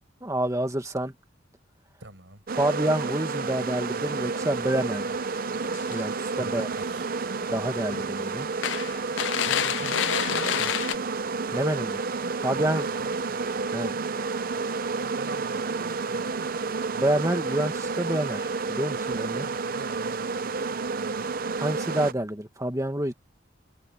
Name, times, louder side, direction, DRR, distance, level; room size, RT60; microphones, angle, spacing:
voice 1, 0.2-1.1 2.6-5.2 5.9-6.7 7.5-8.5 11.5-12.0 12.4-12.9 13.7-13.9 17.0-19.5 21.6-23.1, right 1 dB, 15° right, 1.8 m, -28 dB
voice 2, 2.0-2.4 6.4-7.1 9.3-10.7 12.6-13.5 13.8-14.2 14.9-16.8 19.3-21.3, right 2 dB, 65° right, 6.6 m, -43 dB
sound 1, 2.5-22.1, right 4 dB, 45° right, 0.6 m, -30 dB
sound 2, 2.8-2.9 3.2-3.5 4.2-4.3 4.8-4.9 5.6-6.2 6.6-7.1 7.4-7.5 7.9-8.1 8.6-11.0, left 10 dB, 65° left, 0.4 m, -28 dB
head